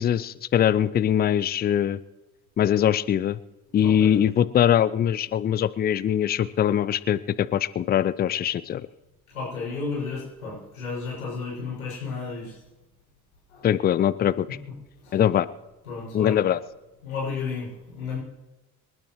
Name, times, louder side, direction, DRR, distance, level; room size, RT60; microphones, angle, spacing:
voice 1, 0.0-2.0 2.6-3.4 3.7-8.8 13.6-14.5 15.1-15.5 16.1-16.6, left 10 dB, 20° left, 18 dB, 0.5 m, -22 dB
voice 2, 3.7-4.2 9.3-12.6 13.5-13.7 14.5-14.6 15.0-15.2 15.8-16.4 17.0-18.2, left 4 dB, 75° left, -4 dB, 6.8 m, -33 dB
27.5 x 12.5 x 3.2 m, 1.1 s
figure-of-eight pair, 55°, 43 cm